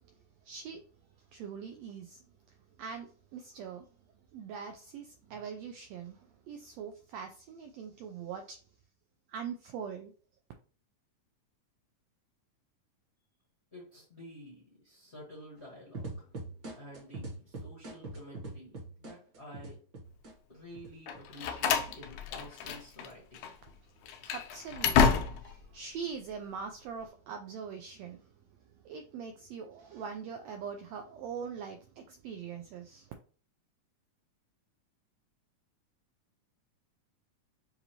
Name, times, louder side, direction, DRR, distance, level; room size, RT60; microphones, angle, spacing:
voice 1, 0.4-0.8 1.3-2.2 2.8-3.9 4.3-8.6 9.3-10.1 24.2-28.3 28.8-33.1, right 6 dB, 85° right, 1.5 m, -42 dB
voice 2, 13.7-16.3 16.8-19.8 20.5-23.5, left 1 dB, 40° left, 0.9 m, -50 dB
sound 1, 15.9-20.3 20.7-21.5, right 2 dB, 45° right, 1.5 m, -42 dB
Slam, 21.1-23.1 23.3-23.5 24.0-25.6, left 7 dB, 80° left, 2.1 m, -29 dB
6.8 x 2.7 x 2.8 m
omnidirectional pair, 3.5 m